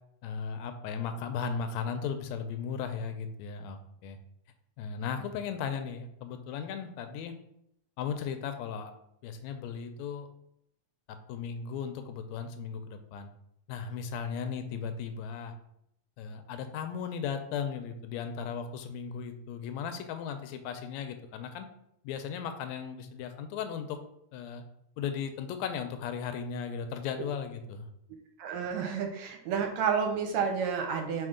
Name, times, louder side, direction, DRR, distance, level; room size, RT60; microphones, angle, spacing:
voice 1, 0.2-4.2 4.8-7.3 8.0-8.9 9.2-10.3 11.1-13.3 13.7-15.5 16.2-21.7 22.0-24.0 24.3-24.6 25.0-27.9, left 6 dB, 80° left, 7 dB, 1.7 m, -36 dB
voice 2, 28.4-31.3, right 6 dB, 75° right, 4 dB, 1.8 m, -30 dB
4.4 x 4.3 x 4.9 m, 0.76 s
omnidirectional pair, 3.5 m